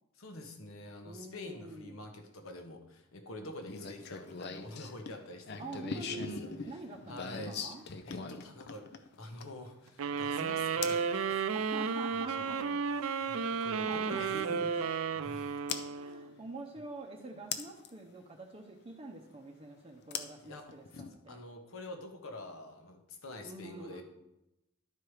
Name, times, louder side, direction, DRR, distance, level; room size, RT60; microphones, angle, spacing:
voice 1, 0.1-6.8 7.1-7.6 8.0-11.5 12.1-15.6 16.1-16.2 20.4-24.0, left 1 dB, 80° left, 5 dB, 1.2 m, -47 dB
voice 2, 1.0-2.0 5.6-7.8 11.5-12.6 13.5-14.3 15.8-21.4 23.4-24.0, right 3 dB, 25° right, 1 dB, 0.7 m, -46 dB
sound 1, 3.7-9.7 10.8-11.1 13.0-13.1 15.7-15.9 17.5-17.9 20.1-21.1, left 5 dB, 50° left, 0.6 m, -40 dB
sound 2, 10.0-16.4, right 6 dB, 80° right, 0.5 m, -33 dB
11.5 x 4.7 x 4.8 m, 0.91 s
head